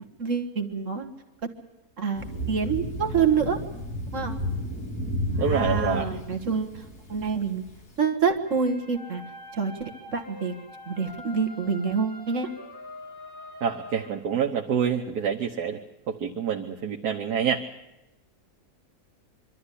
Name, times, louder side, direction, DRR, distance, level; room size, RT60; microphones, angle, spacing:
voice 1, 0.2-1.1 2.0-3.6 4.1-4.4 5.3-6.8 7.1-7.6 8.0-9.2 9.5-10.5 10.9-12.5, right 6 dB, 55° right, 6 dB, 1.9 m, -27 dB
Thunder, 2.2-7.9, left 1 dB, 75° left, 3.3 m, -32 dB
voice 2, 5.4-6.1 6.4-6.5 13.6-15.8 16.1-17.6, right 7 dB, 85° right, 1 dB, 1.7 m, -27 dB
sound 1, 8.5-14.1, left 1 dB, 15° right, 2.8 m, -44 dB
24.0 x 13.0 x 9.9 m, 0.97 s
omnidirectional pair, 1.7 m